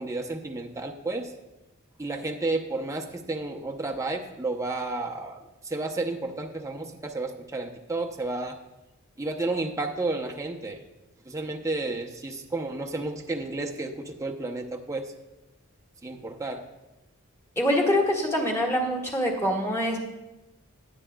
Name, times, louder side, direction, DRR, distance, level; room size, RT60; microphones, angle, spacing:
voice 1, 0.0-1.3 2.0-8.6 9.2-10.8 11.3-15.1 16.0-16.6, right 2 dB, 15° right, 1 dB, 0.7 m, -32 dB
voice 2, 17.6-20.0, equal, 10° left, -1 dB, 1.8 m, -24 dB
18.5 x 9.0 x 2.3 m, 1.0 s
head